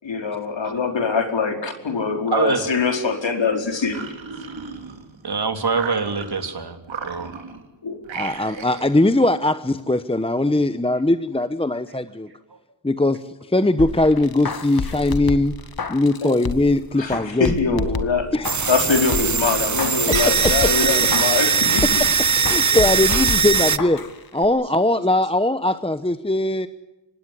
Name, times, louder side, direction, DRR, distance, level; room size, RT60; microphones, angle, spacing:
voice 1, 0.0-4.0 7.8-8.0 16.2-16.4 17.0-18.3 18.7-22.1, left 5 dB, 75° left, 5 dB, 4.6 m, -23 dB
voice 2, 2.3-2.6 5.2-7.3 20.9-21.1, right 5 dB, 60° right, 7 dB, 3.4 m, -25 dB
sound 1, 3.7-5.2 5.7-6.5 6.8-7.7 8.0-9.0, right 5 dB, 90° right, 3.6 m, -35 dB
voice 3, 8.2-12.3 12.8-13.2 13.5-15.6 15.9-17.8 18.3-18.8 20.1-20.7 22.4-24.0 24.3-26.7, left 2 dB, 10° left, 12 dB, 1.0 m, -20 dB
sound 2, 13.8-16.8 17.1-18.8 19.1-22.1 22.4-24.1 24.4-24.5, left 4 dB, 55° left, 2.0 m, -30 dB
sound 3, 18.4-23.8, right 6 dB, 40° right, 0.9 m, -20 dB
25.5 x 20.0 x 9.9 m, 1.0 s
wide cardioid pair, 80°, 44 cm